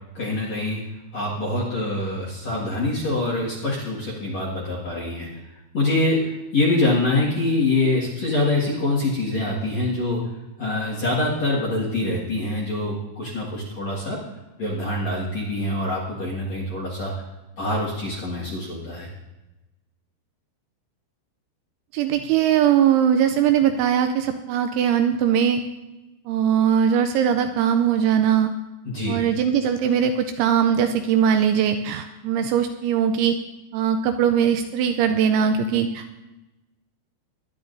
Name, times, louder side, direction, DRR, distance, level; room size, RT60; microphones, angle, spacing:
voice 1, 0.1-0.8 1.1-5.4 5.7-10.3 10.6-14.2 14.6-17.1 17.6-19.1 28.8-29.2, left 2 dB, 55° left, -3 dB, 2.0 m, -25 dB
voice 2, 21.9-25.6 26.3-28.5 29.1-33.4 33.7-36.3, right 8 dB, 85° right, 7 dB, 2.8 m, -20 dB
21.5 x 10.5 x 2.6 m, 1.0 s
omnidirectional pair, 5.8 m